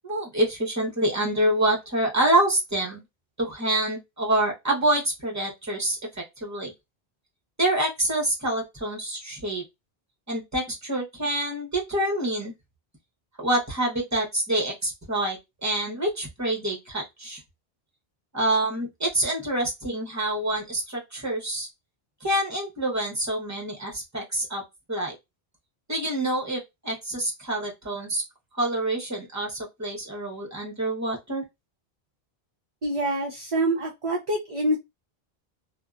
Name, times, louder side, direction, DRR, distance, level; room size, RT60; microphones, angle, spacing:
voice 1, 0.0-3.0 3.4-6.7 7.6-9.6 10.3-12.5 13.4-17.4 18.3-21.7 22.2-24.6 24.9-25.2 25.9-28.2 28.6-31.4, right 1 dB, 20° right, 0.8 m, -26 dB
voice 2, 32.8-34.8, right 1 dB, 45° right, 0.5 m, -26 dB
2.6 x 2.2 x 2.3 m
omnidirectional pair, 1.0 m